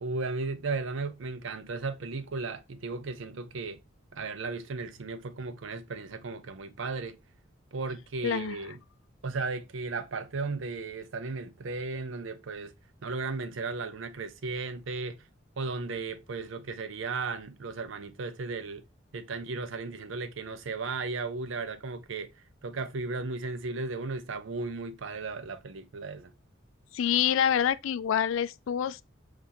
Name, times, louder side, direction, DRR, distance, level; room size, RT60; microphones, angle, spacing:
voice 1, 0.0-3.8 4.1-7.2 7.7-8.8 9.2-12.7 13.0-15.2 15.6-18.8 19.1-22.3 22.6-26.3, right 3 dB, 75° right, 0.5 m, -35 dB
voice 2, 8.2-8.6 26.9-29.0, left 9 dB, 80° left, 0.3 m, -26 dB
5.6 x 2.5 x 2.6 m
head